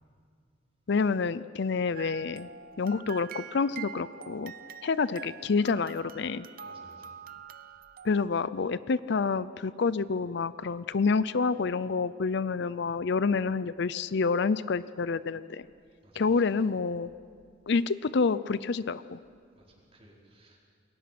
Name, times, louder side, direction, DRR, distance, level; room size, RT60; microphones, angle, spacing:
voice 1, 0.9-2.5 2.8-4.5 4.8-6.5 8.0-15.7 16.1-17.1 17.7-19.2, left 4 dB, 60° left, 16 dB, 0.5 m, -28 dB
sound 1, 2.0-8.3, right 7 dB, 45° right, 0.7 m, -45 dB
voice 2, 6.6-7.2 16.0-16.3 19.5-20.6, right 1 dB, 30° right, -3 dB, 4.7 m, -58 dB
28.5 x 22.5 x 6.0 m, 2.2 s
head